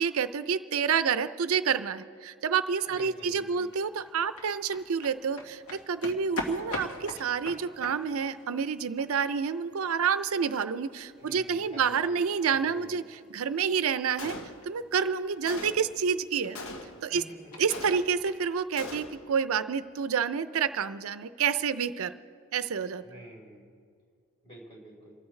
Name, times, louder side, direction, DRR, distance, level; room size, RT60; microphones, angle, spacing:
voice 1, 0.0-13.0 13.3-14.4 14.6-16.6 17.0-17.2 17.6-22.1 22.5-23.2, right 6 dB, 70° right, 12 dB, 0.5 m, -28 dB
sound 1, 2.8-18.5, left 1 dB, 85° left, 1.9 m, -45 dB
voice 2, 2.8-3.7 11.2-13.0 17.1-17.3 23.0-23.7 24.4-25.1, equal, 25° left, -3 dB, 4.3 m, -48 dB
Gunshot gunfire, 14.2-14.9 15.5-16.0 16.5-17.2 17.7-18.4 18.8-19.3, left 2 dB, 70° left, 1.2 m, -41 dB
28.0 x 14.0 x 3.2 m, 2.1 s
head